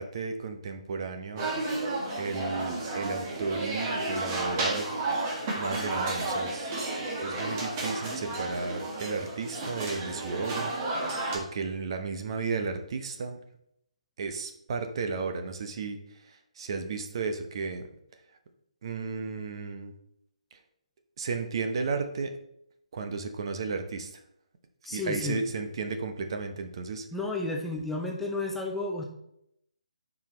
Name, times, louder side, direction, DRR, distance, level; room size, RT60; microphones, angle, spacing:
voice 1, 0.0-1.5 2.2-4.9 5.6-6.7 7.2-10.7 11.3-13.4 14.2-16.0 16.6-17.9 18.8-19.9 21.2-22.3 22.9-24.1 24.9-27.0, right 4 dB, 45° right, 6 dB, 0.9 m, -33 dB
sound 1, 1.4-11.4, right 2 dB, 30° right, 1.6 m, -32 dB
voice 2, 24.8-25.4 27.1-29.0, left 2 dB, 5° left, -1 dB, 0.7 m, -32 dB
10.5 x 5.0 x 3.2 m, 0.76 s
figure-of-eight pair, 145°, 4 cm